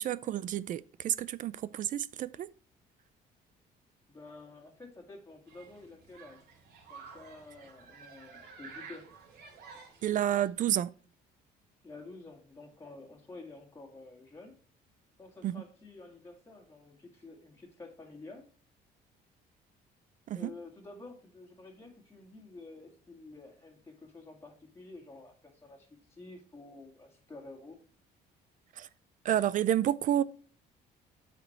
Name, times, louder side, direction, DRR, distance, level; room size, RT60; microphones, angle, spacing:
voice 1, 0.0-2.5 10.0-10.9 15.4-15.6 20.3-20.5 28.8-28.9 29.2-30.2, right 11 dB, 50° right, 0.4 m, -30 dB
voice 2, 4.1-6.4 6.9-9.1 11.8-14.6 15.2-18.5 20.3-27.8, left 3 dB, 15° left, 2.0 m, -50 dB
Human group actions, 5.5-10.5, right 5 dB, 70° right, 2.8 m, -52 dB
8.5 x 5.2 x 4.4 m
cardioid pair, 110°, 17 cm